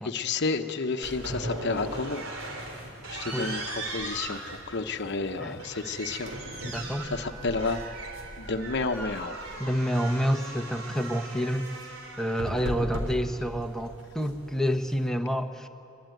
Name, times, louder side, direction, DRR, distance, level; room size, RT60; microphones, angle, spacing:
voice 1, 0.0-2.3 2.6-6.7 7.0-8.0 8.4-9.4, left 3 dB, 55° left, 6 dB, 0.9 m, -31 dB
sound 1, 1.0-15.1, right 1 dB, 75° right, 3.6 m, -38 dB
Wind instrument woodwind instrument, 5.4-9.5, right 5 dB, 45° right, 2.0 m, -48 dB
voice 2, 6.6-7.1 9.6-11.9 12.2-15.7, equal, ahead, 5 dB, 1.0 m, -28 dB
23.5 x 21.5 x 9.2 m, 2.8 s
head